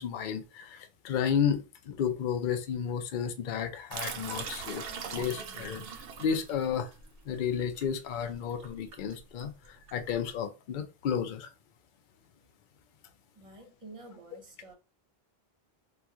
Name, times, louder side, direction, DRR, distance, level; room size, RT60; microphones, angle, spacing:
voice 1, 0.0-4.8 5.1-6.9 7.3-11.5, left 7 dB, 60° left, 0.6 m, -32 dB
sound 1, 3.9-10.3, right 6 dB, 70° right, 0.8 m, -41 dB
voice 2, 13.3-14.8, right 2 dB, 35° right, 0.9 m, -49 dB
2.9 x 2.3 x 3.5 m
omnidirectional pair, 1.1 m